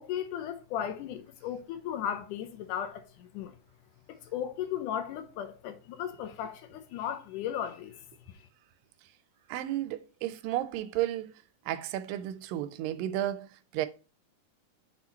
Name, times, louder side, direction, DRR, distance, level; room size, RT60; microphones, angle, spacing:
voice 1, 0.0-3.6 4.1-8.0, left 9 dB, 75° left, 2.1 m, -36 dB
voice 2, 9.5-11.3 11.7-13.5 13.7-13.9, right 13 dB, 90° right, 2.3 m, -32 dB
6.1 x 3.7 x 4.1 m
omnidirectional pair, 3.9 m